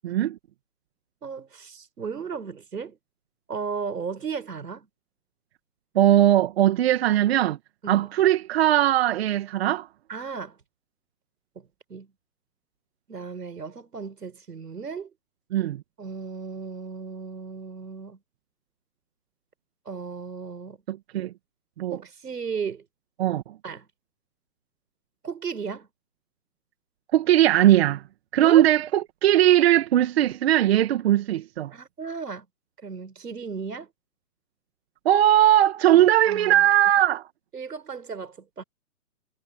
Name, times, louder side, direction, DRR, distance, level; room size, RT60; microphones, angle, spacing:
voice 1, 0.0-0.4 6.0-7.6 7.9-9.9 15.5-15.8 20.9-21.3 21.8-22.0 23.2-23.6 27.1-28.0 28.3-31.7 35.1-37.3, right 12 dB, 40° right, 2.0 m, -20 dB
voice 2, 1.2-3.0 3.5-4.9 7.8-8.1 10.1-10.6 11.5-12.1 13.1-15.1 16.0-18.2 19.8-20.8 21.9-22.8 23.6-23.9 25.2-25.9 28.4-28.6 31.7-32.5 32.8-33.9 36.3-36.7 37.5-38.6, right 5 dB, 75° right, 5.0 m, -35 dB
hypercardioid pair, 145°, 48 cm